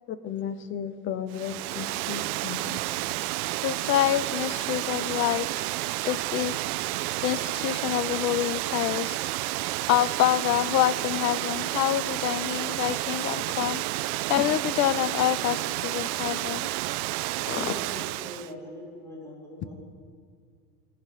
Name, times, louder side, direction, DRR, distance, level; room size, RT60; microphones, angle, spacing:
voice 1, 0.1-2.8 14.4-14.5 17.4-17.7, left 8 dB, 25° left, 0.7 m, -34 dB
Water, 1.3-18.5, right 18 dB, 65° right, 0.5 m, -30 dB
voice 2, 3.6-5.5 6.0-6.6 7.2-9.2 9.9-13.8 14.3-16.7, left 13 dB, 80° left, 0.6 m, -26 dB
voice 3, 17.4-19.7, left 1 dB, 5° left, 2.5 m, -42 dB
17.5 x 5.9 x 8.1 m
hypercardioid pair, 115°, 49 cm